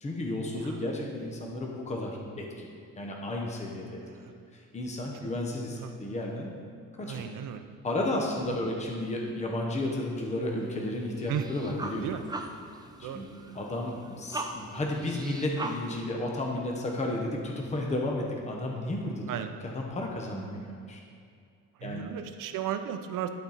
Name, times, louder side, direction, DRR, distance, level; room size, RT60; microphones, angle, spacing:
voice 1, 0.0-2.7 3.0-4.0 4.5-6.5 7.0-7.2 7.8-12.1 13.0-13.3 13.5-19.2 19.6-21.0 21.8-22.1, left 1 dB, 20° left, 0 dB, 0.9 m, -33 dB
voice 2, 7.1-7.6 8.5-8.6 11.3-11.4 12.0-12.2 13.0-13.2 19.3-19.5 21.8-23.3, right 10 dB, 70° right, 8 dB, 0.6 m, -34 dB
sound 1, 10.5-16.0, right 2 dB, 10° right, 0.5 m, -41 dB
11.5 x 4.3 x 4.0 m, 2.3 s
cardioid pair, 115°, 33 cm